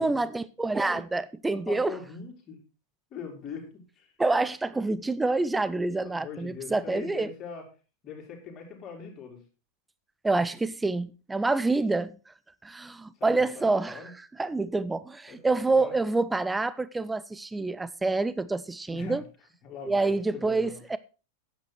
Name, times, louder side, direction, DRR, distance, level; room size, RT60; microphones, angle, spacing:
voice 1, 0.0-2.0 4.2-7.3 10.2-12.1 12.6-14.0 14.4-19.2 19.8-21.0, right 3 dB, 10° right, 0.5 m, -27 dB
voice 2, 1.5-2.6 3.1-4.1 6.0-7.6 8.0-9.4 13.2-14.1 15.3-15.4 15.7-16.0 18.9-19.2 19.6-20.8, left 6 dB, 30° left, 4.1 m, -41 dB
10.5 x 8.9 x 4.4 m
figure-of-eight pair, 90°, 0 cm